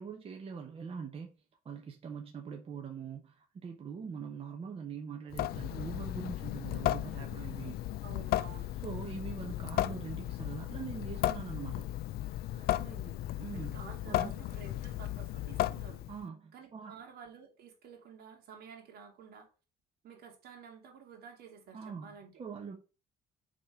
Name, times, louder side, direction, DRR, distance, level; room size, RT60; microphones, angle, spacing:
voice 1, 0.0-1.3 1.6-7.8 8.8-11.9 13.4-13.8 14.0-14.3 16.1-17.0 21.7-22.8, right 6 dB, 35° right, 1.0 m, -43 dB
Water tap faucet / Sink (filling or washing) / Drip, 5.3-16.2, left 14 dB, 65° left, 0.4 m, -35 dB
voice 2, 8.0-8.7 12.5-13.2 13.5-16.0 16.5-19.5 20.0-22.4, right 6 dB, 65° right, 2.3 m, -51 dB
4.9 x 4.1 x 5.8 m
cardioid pair, 110°, 17 cm